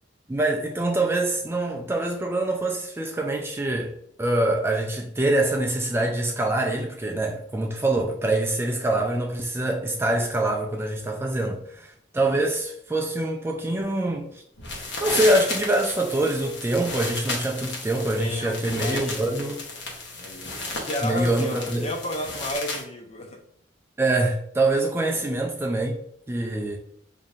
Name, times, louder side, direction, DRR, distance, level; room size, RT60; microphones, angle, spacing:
voice 1, 0.3-3.9 4.2-14.4 15.0-19.6 21.0-21.9 24.0-25.9 26.3-26.8, right 2 dB, 15° right, 0.3 m, -25 dB
sound 1, 14.6-22.8, left 3 dB, 70° left, 1.0 m, -33 dB
voice 2, 17.9-19.3 20.1-23.4 25.1-25.3, left 1 dB, 35° left, 0.6 m, -33 dB
5.1 x 2.7 x 2.4 m
head